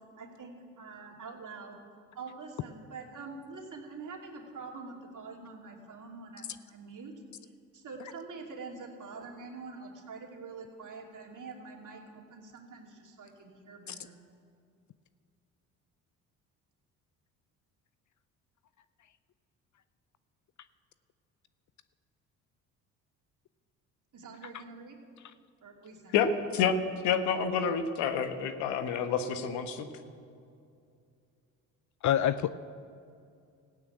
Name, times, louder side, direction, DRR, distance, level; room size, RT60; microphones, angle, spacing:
voice 1, 0.2-1.8 2.1-7.1 7.7-14.2 24.1-24.9 25.6-26.2, right 4 dB, 45° right, 1 dB, 2.8 m, -45 dB
voice 2, 27.0-29.9, left 7 dB, 75° left, 8 dB, 1.3 m, -28 dB
voice 3, 32.0-32.5, left 10 dB, 45° left, 14 dB, 0.5 m, -26 dB
15.0 x 8.8 x 9.1 m, 2.4 s
hypercardioid pair, 60°, 41 cm